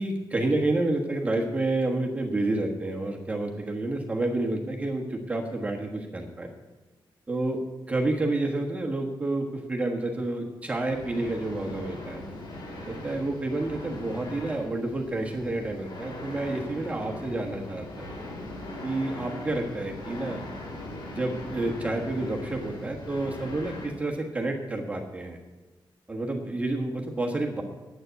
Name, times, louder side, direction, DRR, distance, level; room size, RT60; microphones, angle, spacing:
voice 1, 0.0-6.5 7.3-7.6 7.9-12.2 12.8-18.1 18.8-20.4 21.1-25.4 26.1-27.6, right 2 dB, 15° right, 1 dB, 1.4 m, -29 dB
sound 1, 10.8-23.9, left 1 dB, 60° left, 5.3 m, -40 dB
9.7 x 8.2 x 9.2 m, 1.2 s
wide cardioid pair, 155°, 9 cm